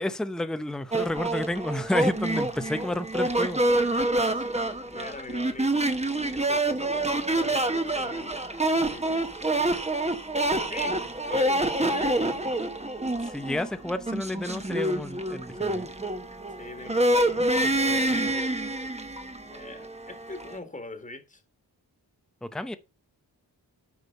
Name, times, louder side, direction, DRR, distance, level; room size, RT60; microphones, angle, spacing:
voice 1, 0.0-3.6 13.2-15.9 22.4-22.8, left 1 dB, ahead, 0.8 m, -30 dB
sound 1, 0.9-20.6, right 1 dB, 15° right, 1.2 m, -27 dB
voice 2, 4.3-5.7 6.3-7.1 7.3-8.3 8.8-9.4 9.8-10.0 10.3-10.4 10.7-11.0 11.3-12.7 16.5-17.5 17.9-18.6 19.5-21.4, left 2 dB, 20° left, 1.8 m, -42 dB
8.2 x 5.0 x 5.4 m
cardioid pair, 50°, 42 cm